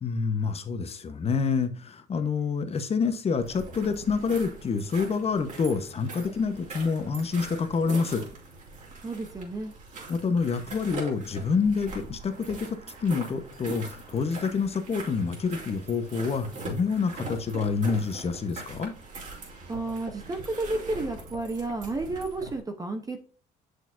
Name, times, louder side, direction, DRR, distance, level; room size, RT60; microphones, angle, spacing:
voice 1, 0.0-8.2 10.1-18.9, left 5 dB, 35° left, 9 dB, 1.2 m, -27 dB
sound 1, 3.4-22.6, right 3 dB, 45° right, 3.4 m, -42 dB
voice 2, 9.0-9.7 19.7-23.2, right 2 dB, 20° right, 6 dB, 1.0 m, -32 dB
7.1 x 6.5 x 2.7 m, 0.40 s
cardioid pair, 110°, 17 cm